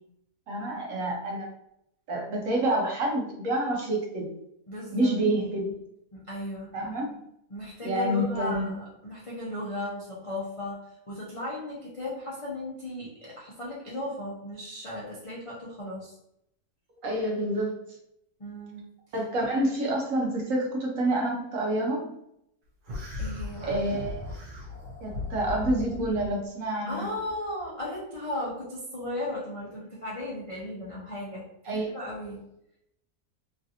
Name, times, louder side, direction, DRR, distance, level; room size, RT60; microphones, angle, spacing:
voice 1, 0.5-1.5 2.1-4.3 4.9-5.8 6.7-7.1 7.8-8.7 17.0-17.8 19.1-22.1 23.6-24.2 25.0-27.1 31.7-31.9, right 1 dB, 65° right, -1 dB, 1.0 m, -28 dB
voice 2, 4.7-5.1 6.1-6.7 7.5-16.1 18.4-18.8 23.2-23.8 26.9-32.4, left 1 dB, 45° left, -7 dB, 0.4 m, -36 dB
sound 1, 22.9-26.3, left 3 dB, 80° right, 1.3 m, -37 dB
3.2 x 2.5 x 2.7 m, 0.78 s
omnidirectional pair, 1.6 m